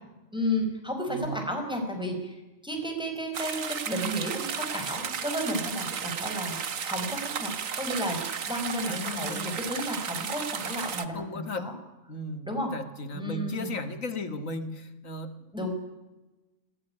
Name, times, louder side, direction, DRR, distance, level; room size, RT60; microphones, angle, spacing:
voice 1, 0.3-6.6 6.8-11.7 12.5-12.7 13.1-13.7 15.5-15.7, equal, 5° right, 2 dB, 5.2 m, -32 dB
voice 2, 1.1-1.4 8.9-9.5 11.1-11.7 12.1-15.5, left 2 dB, 90° left, 10 dB, 2.4 m, -36 dB
sound 1, 3.3-11.1, right 7 dB, 90° right, 1.7 m, -34 dB
27.0 x 16.5 x 10.0 m, 1.1 s
omnidirectional pair, 1.3 m